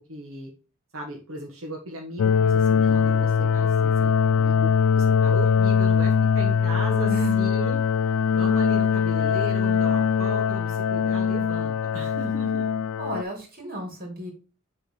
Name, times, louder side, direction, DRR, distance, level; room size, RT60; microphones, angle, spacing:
voice 1, 0.1-0.5 0.9-4.7 4.9-7.8 8.3-12.7, equal, 75° right, -1 dB, 1.4 m, -36 dB
sound 1, 2.2-13.2, left 6 dB, 90° left, 0.4 m, -21 dB
voice 2, 13.0-14.3, equal, 45° right, 2 dB, 2.5 m, -33 dB
6.8 x 3.7 x 4.8 m, 0.34 s
head